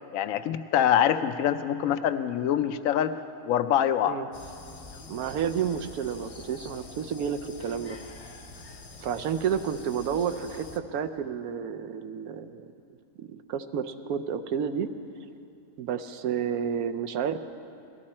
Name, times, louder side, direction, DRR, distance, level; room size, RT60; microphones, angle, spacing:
voice 1, 0.1-3.1 3.4-4.2, left 10 dB, 75° left, 10 dB, 1.0 m, -24 dB
sound 1, 4.3-10.8, left 3 dB, 40° left, 0.5 m, -46 dB
voice 2, 5.1-8.0 9.0-12.7 13.2-14.9 15.8-17.4, right 7 dB, 85° right, 8 dB, 1.1 m, -30 dB
18.5 x 13.0 x 4.3 m, 2.6 s
omnidirectional pair, 1.5 m